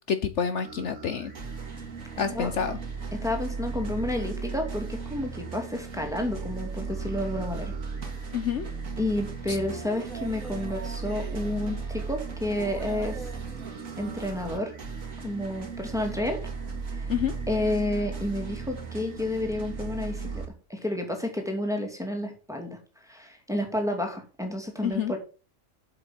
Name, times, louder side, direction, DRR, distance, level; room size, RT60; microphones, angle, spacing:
voice 1, 0.1-1.3 2.2-2.8 8.3-8.7 9.5-9.6 17.1-17.3 24.8-25.1, left 7 dB, 60° left, 10 dB, 1.1 m, -28 dB
sound 1, 0.6-20.5, right 5 dB, 80° right, 2.5 m, -36 dB
voice 2, 3.1-7.7 9.0-13.2 14.0-14.7 15.2-16.4 16.9-17.1 17.5-20.4 20.7-25.2, left 1 dB, ahead, 2 dB, 2.4 m, -30 dB
8.1 x 6.9 x 5.9 m, 0.34 s
omnidirectional pair, 1.4 m